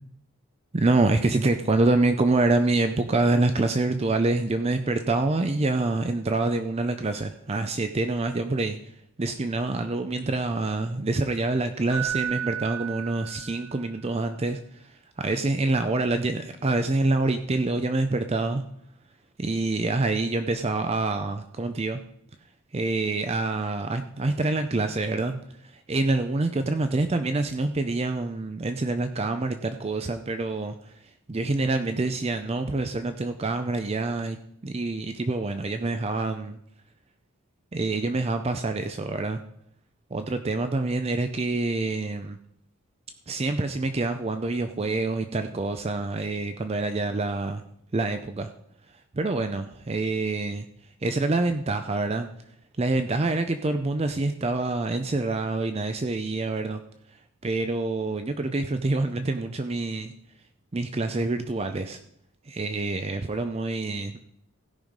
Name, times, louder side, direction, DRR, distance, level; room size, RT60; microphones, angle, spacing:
voice 1, 0.7-8.8 9.2-18.6 19.4-22.0 22.7-30.9 31.3-36.6 37.7-39.4 40.1-42.4 43.3-47.6 47.9-48.5 49.1-50.7 51.0-52.3 52.8-56.8 57.4-60.1 60.7-62.0 62.5-64.2, right 2 dB, 25° right, 8 dB, 0.5 m, -26 dB
Keyboard (musical), 11.9-13.8 17.1-17.3, right 10 dB, 80° right, 3.2 m, -33 dB
16.0 x 5.6 x 5.2 m, 0.74 s
head